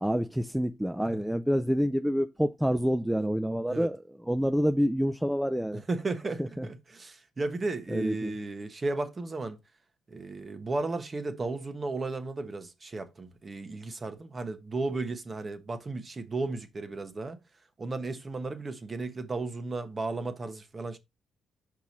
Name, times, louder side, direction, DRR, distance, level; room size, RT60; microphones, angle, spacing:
voice 1, 0.0-5.8 6.6-6.7 7.9-8.3, equal, 5° right, 0.4 m, -27 dB
voice 2, 5.9-9.6 10.1-17.4 17.8-21.0, right 3 dB, 30° right, 1.2 m, -34 dB
5.7 x 4.8 x 4.0 m
cardioid pair, 90°, 0 cm